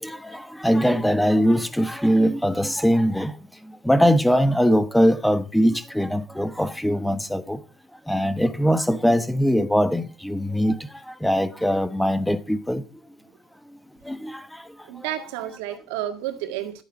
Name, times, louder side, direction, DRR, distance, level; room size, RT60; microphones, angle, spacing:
voice 1, 0.0-3.3 3.8-7.6 8.1-10.8 11.2-12.8 14.1-14.6, equal, 5° left, 1.0 m, -21 dB
voice 2, 14.8-16.8, right 12 dB, 80° right, 1.8 m, -31 dB
11.0 x 8.3 x 5.3 m
supercardioid pair, 110°, 0 cm